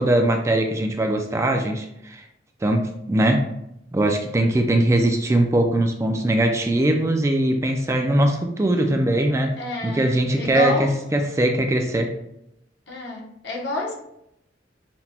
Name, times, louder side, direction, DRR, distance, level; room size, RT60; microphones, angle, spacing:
voice 1, 0.0-2.2 2.6-3.4 3.9-9.5 9.8-12.1, right 1 dB, 15° right, 4 dB, 0.3 m, -21 dB
voice 2, 9.6-10.1 10.3-10.9 12.9-13.9, left 1 dB, 70° left, -2 dB, 1.0 m, -29 dB
5.8 x 2.2 x 2.8 m, 0.80 s
head